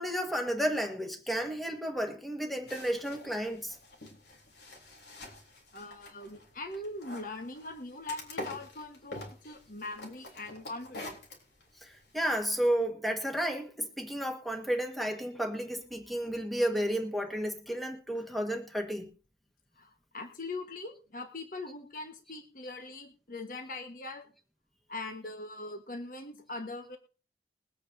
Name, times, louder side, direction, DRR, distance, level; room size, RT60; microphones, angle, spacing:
voice 1, 0.0-3.8 11.8-19.1, equal, ahead, 1.5 m, -32 dB
sound 1, 2.7-12.7, left 1 dB, 80° left, 3.6 m, -47 dB
voice 2, 5.7-11.2 19.8-24.3 24.9-27.0, left 2 dB, 50° left, 1.3 m, -41 dB
22.0 x 8.5 x 2.7 m
head